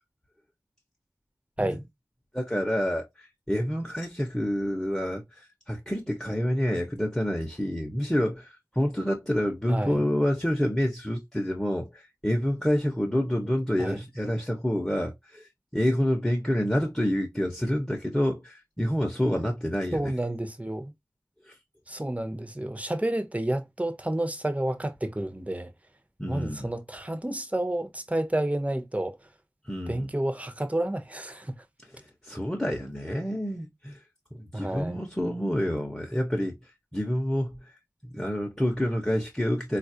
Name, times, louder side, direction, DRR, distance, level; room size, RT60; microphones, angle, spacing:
voice 1, 2.3-20.1 21.5-21.6 26.2-26.7 29.6-30.1 31.9-34.0 34.3-36.6 36.9-37.7 38.1-39.8, equal, 10° left, 0.9 m, -28 dB
voice 2, 9.7-10.1 13.8-14.0 19.9-20.9 21.9-25.7 26.3-29.2 29.9-31.6 34.5-35.0, right 1 dB, 20° right, 0.7 m, -30 dB
3.9 x 2.4 x 2.7 m
wide cardioid pair, 50°, 7 cm